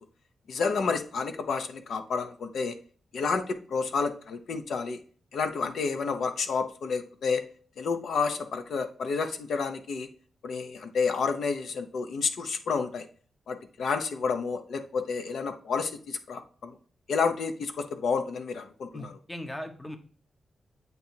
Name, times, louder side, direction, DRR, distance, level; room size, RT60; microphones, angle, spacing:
voice 1, 0.5-2.7 3.1-5.0 5.3-7.4 7.8-10.1 10.4-13.1 13.5-16.7 17.1-19.1, left 5 dB, 65° left, 8 dB, 0.7 m, -30 dB
voice 2, 18.9-20.0, left 1 dB, 10° left, 6 dB, 0.6 m, -38 dB
8.0 x 2.8 x 4.3 m, 0.44 s
wide cardioid pair, 160°, 0 cm